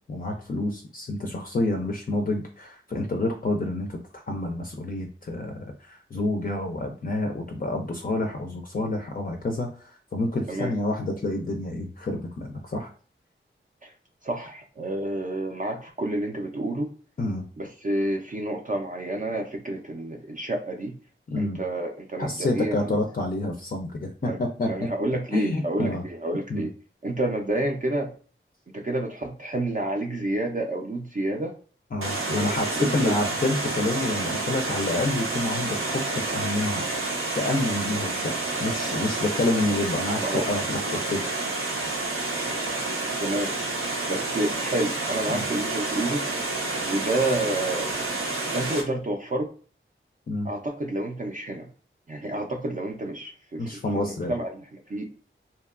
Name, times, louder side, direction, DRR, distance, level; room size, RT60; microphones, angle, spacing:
voice 1, 0.1-4.0 4.3-12.9 17.2-17.4 21.3-21.6 22.2-24.9 25.3-26.0 26.5-26.7 31.9-36.9 37.3-38.3 38.6-41.2 45.3-45.4 50.3-50.5 53.6-54.3, left 2 dB, 45° left, 3 dB, 0.4 m, -28 dB
voice 2, 14.2-16.9 17.6-20.9 21.4-23.0 24.2-24.4 24.7-26.7 27.0-28.1 28.7-31.5 32.3-33.1 40.2-40.4 43.2-43.6 44.1-46.2 46.9-48.0 48.5-49.5 50.4-51.7 52.1-53.6 53.9-55.0, right 1 dB, 40° right, 2 dB, 0.4 m, -29 dB
Water, 32.0-48.8, right 2 dB, 85° right, 0.6 m, -29 dB
2.7 x 2.2 x 2.3 m, 0.41 s
wide cardioid pair, 65°, 21 cm